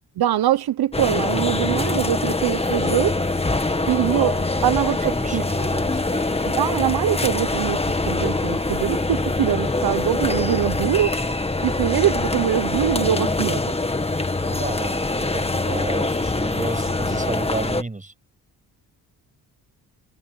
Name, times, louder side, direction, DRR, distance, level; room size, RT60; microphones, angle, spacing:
voice 1, 0.2-3.3 3.9-5.4 6.5-7.8 8.1-11.2 11.6-13.7, right 12 dB, 75° right, 0.9 m, -23 dB
sound 1, 0.9-17.8, left 2 dB, 15° left, 1.8 m, -24 dB
sound 2, 2.9-16.3 16.8-17.2 17.4-17.5, equal, ahead, 7.9 m, -40 dB
voice 2, 3.7-4.0 4.6-6.4 11.2-11.4 14.4-18.1, right 2 dB, 20° right, 6.8 m, -32 dB
cardioid pair, 85°, 38 cm